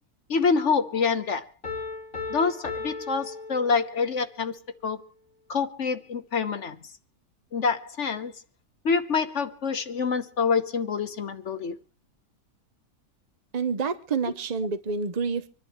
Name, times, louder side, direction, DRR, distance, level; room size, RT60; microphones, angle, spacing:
voice 1, 0.3-1.5 2.3-4.6 4.8-5.0 5.5-6.8 7.5-8.3 8.8-11.7, left 5 dB, 50° left, 1.2 m, -26 dB
Piano, 1.6-4.2, left 4 dB, 35° left, 2.4 m, -36 dB
voice 2, 13.5-15.5, right 5 dB, 40° right, 0.6 m, -28 dB
26.0 x 11.0 x 3.1 m
omnidirectional pair, 1.7 m